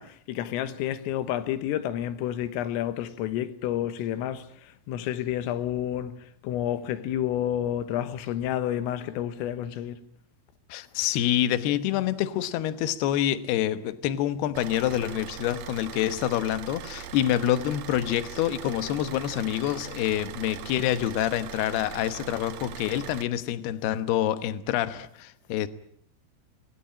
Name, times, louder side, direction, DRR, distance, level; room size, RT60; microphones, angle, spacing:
voice 1, 0.0-10.0, left 11 dB, 85° left, 3.9 m, -30 dB
voice 2, 10.7-25.7, left 12 dB, 70° left, 2.7 m, -27 dB
Car / Idling, 14.5-23.2, right 10 dB, 85° right, 1.9 m, -41 dB
25.0 x 20.5 x 8.8 m
omnidirectional pair, 5.8 m